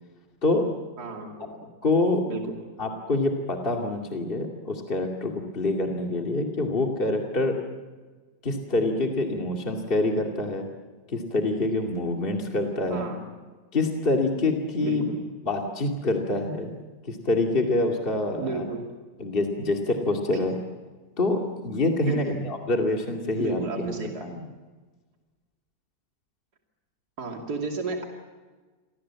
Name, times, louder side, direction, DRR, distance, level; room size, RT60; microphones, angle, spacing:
voice 1, 1.0-1.5 2.3-2.5 12.9-13.2 14.8-15.2 18.4-18.8 20.4-20.6 22.1-22.4 23.4-24.3 27.2-28.0, right 4 dB, 60° right, 1 dB, 3.2 m, -33 dB
voice 2, 1.8-2.2 2.8-7.5 8.4-10.7 11.1-13.1 13.7-15.1 15.4-16.7 17.1-18.6 19.2-20.6 21.2-23.9 24.2-24.4, left 2 dB, 30° left, 1 dB, 2.6 m, -26 dB
29.5 x 24.0 x 7.5 m, 1.4 s
omnidirectional pair, 1.9 m